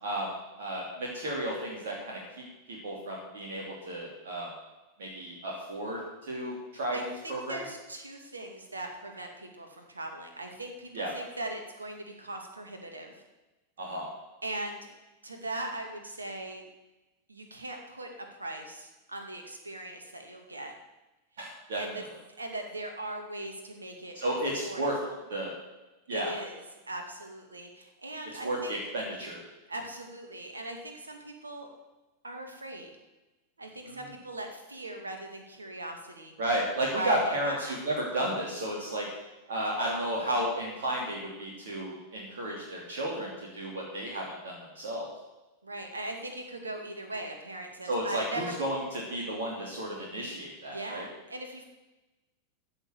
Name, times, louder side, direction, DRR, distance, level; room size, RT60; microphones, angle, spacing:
voice 1, 0.0-2.2 2.7-4.5 5.0-7.6 10.9-11.1 13.8-14.1 21.4-21.8 24.1-25.0 25.3-25.5 26.1-26.3 28.4-29.4 33.8-34.0 36.4-39.1 39.5-45.1 47.8-48.8 49.1-51.1, right 1 dB, 60° right, -3 dB, 3.1 m, -33 dB
voice 2, 6.9-13.2 14.4-14.8 15.2-16.6 17.3-20.7 21.8-22.0 22.4-24.2 24.6-25.2 26.1-26.6 26.9-28.8 29.7-31.7 32.2-32.9 33.6-36.4 36.9-37.7 40.2-40.4 45.6-48.5 50.7-51.7, right 1 dB, 80° right, 4 dB, 2.3 m, -40 dB
15.0 x 6.8 x 8.0 m, 1.1 s
figure-of-eight pair, 90°, 0 cm